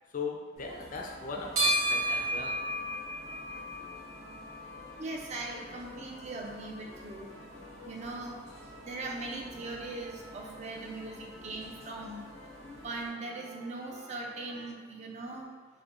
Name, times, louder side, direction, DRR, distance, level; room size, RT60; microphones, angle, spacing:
voice 1, 0.1-2.6, left 4 dB, 40° left, 1 dB, 0.4 m, -38 dB
sound 1, 0.6-13.1, right 1 dB, 90° right, 1.2 m, -37 dB
sound 2, 0.9-14.8, left 1 dB, 80° left, 0.7 m, -52 dB
voice 2, 5.0-7.3 7.9-8.4 8.8-12.2 12.8-15.5, right 2 dB, 35° right, 0 dB, 0.4 m, -40 dB
4.2 x 2.6 x 2.4 m, 1.4 s
head